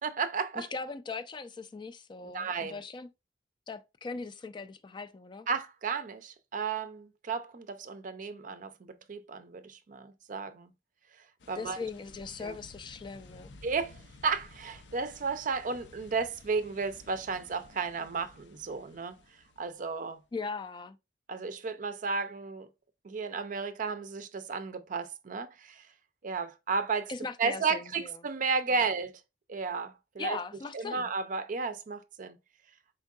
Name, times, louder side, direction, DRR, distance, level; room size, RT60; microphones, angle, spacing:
voice 1, 0.0-0.7 2.3-2.8 5.5-10.7 11.5-11.9 12.4-12.5 13.6-19.2 19.6-20.2 21.3-22.7 23.0-25.9 26.2-27.1 27.4-29.2 29.5-30.4 30.7-32.4, right 5 dB, 50° right, 0.5 m, -33 dB
voice 2, 0.6-3.1 3.7-5.5 11.6-13.5 20.3-21.0 27.1-28.2 30.2-31.1, left 4 dB, 25° left, 0.3 m, -39 dB
sound 1, 11.4-20.1, left 2 dB, 90° left, 0.5 m, -54 dB
4.4 x 3.6 x 2.3 m
head